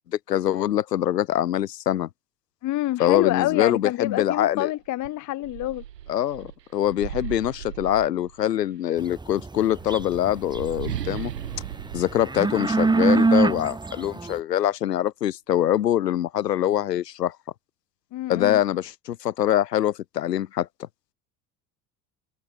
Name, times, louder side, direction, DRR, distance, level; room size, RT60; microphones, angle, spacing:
voice 1, 0.3-2.1 3.0-4.7 6.1-11.3 11.9-17.4 18.3-20.9, left 11 dB, 75° left, 2.6 m, -24 dB
voice 2, 2.6-5.8 18.1-18.6, left 15 dB, 35° left, 0.9 m, -27 dB
sound 1, 4.5-4.6 5.0-8.7 9.6-13.2, right 11 dB, 75° right, 3.9 m, -37 dB
sound 2, 9.0-11.1 11.4-14.4, right 3 dB, 10° right, 1.0 m, -23 dB
figure-of-eight pair, 65°, 49 cm